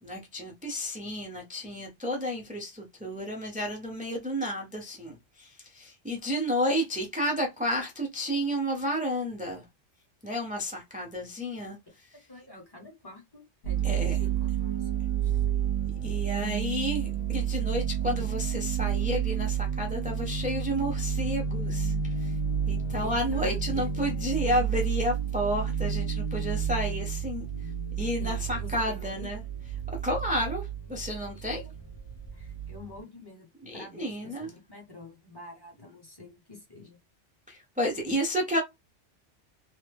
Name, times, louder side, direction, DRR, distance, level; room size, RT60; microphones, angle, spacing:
voice 1, 0.0-9.6 10.2-11.8 13.8-14.2 16.0-22.4 22.7-27.7 28.0-29.4 30.0-31.6 33.6-34.5 37.5-38.6, equal, 10° right, 0.3 m, -31 dB
voice 2, 12.3-15.5 23.0-23.9 28.2-29.3 31.3-31.7 32.3-33.5 33.7-37.0, left 2 dB, 20° left, 0.9 m, -47 dB
sound 1, 13.6-33.0, right 8 dB, 85° left, 1.4 m, -30 dB
3.2 x 2.1 x 3.3 m
omnidirectional pair, 1.2 m